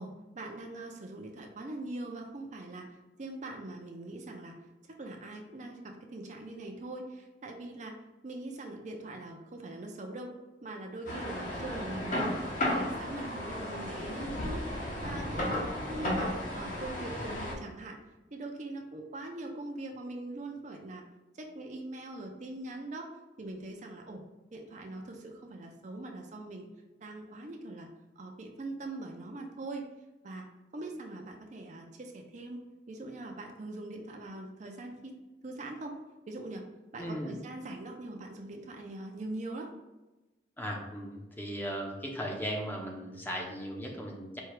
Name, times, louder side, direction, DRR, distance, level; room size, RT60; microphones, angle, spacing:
voice 1, 0.0-4.5 5.0-7.9 8.2-10.3 10.6-12.4 12.7-14.6 15.0-18.0 18.3-21.0 21.4-23.1 23.4-24.2 24.5-26.7 27.0-27.9 28.2-29.9 30.2-32.6 32.9-35.1 35.4-35.9 36.3-36.7 36.9-39.7, right 2 dB, 40° right, 2 dB, 0.5 m, -42 dB
sound 1, 11.1-17.5, left 1 dB, 45° left, 0.9 m, -34 dB
voice 2, 15.0-15.6 37.0-37.4 40.6-44.4, equal, 10° left, -1 dB, 0.6 m, -37 dB
4.4 x 2.3 x 4.8 m, 1.1 s
head